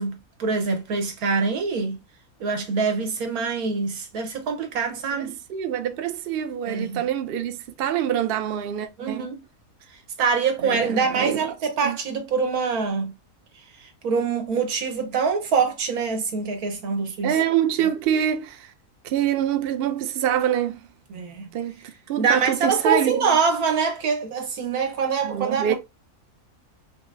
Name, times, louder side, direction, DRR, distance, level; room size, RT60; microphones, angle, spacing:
voice 1, 0.0-2.0 2.4-5.3 6.7-7.0 9.0-9.4 10.2-13.1 13.8-17.3 21.1-21.5 22.2-25.8, right 5 dB, 85° right, 1.4 m, -24 dB
voice 2, 5.1-9.3 10.6-11.5 11.8-12.0 17.2-18.7 19.0-20.9 21.5-21.8 22.1-23.4 25.2-25.7, right 10 dB, 65° right, 0.5 m, -25 dB
5.4 x 2.0 x 2.5 m
omnidirectional pair, 1.5 m